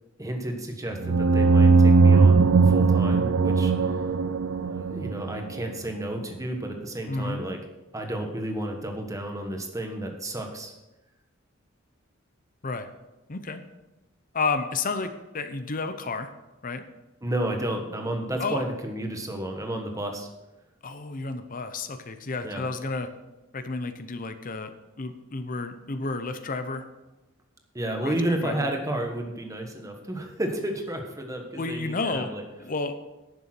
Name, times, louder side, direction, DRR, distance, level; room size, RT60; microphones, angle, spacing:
voice 1, 0.2-3.7 4.6-7.6 7.9-10.7 17.2-20.3 22.4-22.7 27.7-32.4, right 1 dB, 15° right, 3 dB, 1.4 m, -31 dB
sound 1, 1.0-5.6, right 4 dB, 70° right, 0.5 m, -19 dB
voice 2, 7.1-7.4 12.6-12.9 13.3-13.6 14.3-16.3 16.6-16.8 18.4-18.6 20.8-23.1 23.5-24.7 25.0-26.8 27.9-28.7 31.6-32.3 32.6-33.1, left 3 dB, 40° left, 9 dB, 0.8 m, -31 dB
10.5 x 7.0 x 6.0 m, 1.0 s
head